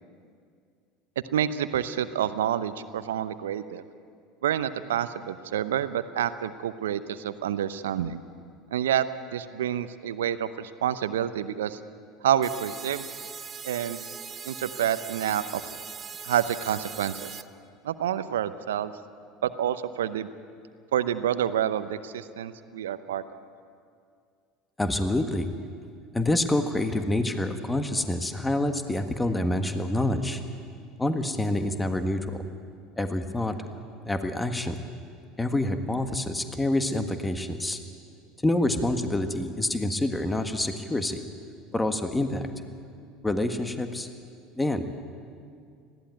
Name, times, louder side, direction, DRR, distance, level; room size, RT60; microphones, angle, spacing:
voice 1, 1.3-3.8 4.4-8.2 8.7-9.0 9.3-11.8 12.2-13.0 13.6-14.0 14.4-15.6 16.2-17.3 17.8-18.9 19.4-20.3 20.9-23.2, right 10 dB, 80° right, 13 dB, 0.7 m, -28 dB
sound 1, 12.4-17.4, right 6 dB, 30° right, 0.8 m, -40 dB
voice 2, 24.8-25.5 26.1-30.4 31.0-32.3 33.0-33.6 34.0-34.8 35.4-37.8 38.4-41.2 41.7-42.5 43.2-44.1 44.6-44.9, left 1 dB, 10° left, 7 dB, 1.6 m, -27 dB
20.0 x 15.0 x 9.3 m, 2.3 s
hypercardioid pair, 75°, 0 cm